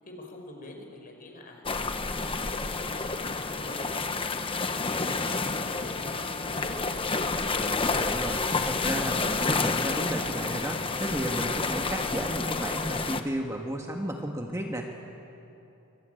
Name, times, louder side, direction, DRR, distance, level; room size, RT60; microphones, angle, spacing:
voice 1, 0.1-1.7 2.0-7.6, left 1 dB, 40° left, 2 dB, 5.2 m, -45 dB
sound 1, 1.7-13.2, left 3 dB, 25° left, 1.1 m, -29 dB
voice 2, 7.6-14.9, right 1 dB, 15° right, 1 dB, 1.6 m, -33 dB
24.5 x 23.5 x 9.2 m, 2.9 s
head